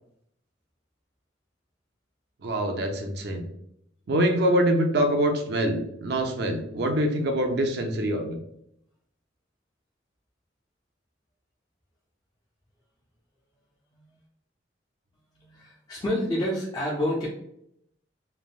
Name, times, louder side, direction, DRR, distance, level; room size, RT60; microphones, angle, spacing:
voice 1, 2.4-3.4 4.1-8.4, right 1 dB, 55° right, 4 dB, 0.5 m, -25 dB
voice 2, 15.4-17.3, equal, 20° left, -5 dB, 0.4 m, -28 dB
3.2 x 2.0 x 2.3 m, 0.74 s
head